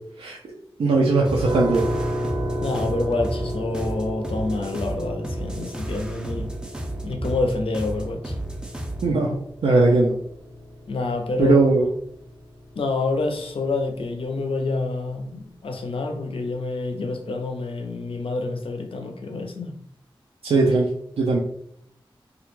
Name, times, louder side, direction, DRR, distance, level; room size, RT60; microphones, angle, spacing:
voice 1, 0.8-1.8 9.0-10.2 11.4-11.9 20.4-20.9 21.2-21.4, right 3 dB, 85° right, -2 dB, 0.4 m, -19 dB
sound 1, 1.2-9.2, right 1 dB, 10° right, 0.4 m, -32 dB
sound 2, 1.4-14.3, equal, 45° right, 0.6 m, -33 dB
voice 2, 2.6-6.5 7.0-8.4 10.9-11.7 12.8-19.7, left 3 dB, 70° left, 4 dB, 0.4 m, -27 dB
2.2 x 2.1 x 3.0 m, 0.70 s
wide cardioid pair, 85°, 10 cm